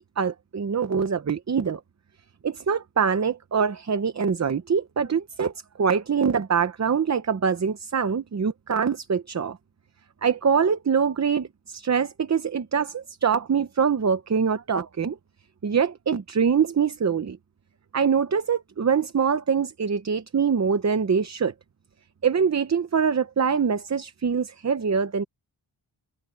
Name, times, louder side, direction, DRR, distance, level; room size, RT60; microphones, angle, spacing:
voice 1, 0.2-1.8 2.4-9.6 10.2-15.2 15.6-17.4 17.9-21.5 22.2-25.2, right 6 dB, 35° right, 0.7 m, -24 dB
wide cardioid pair, 170°, 49 cm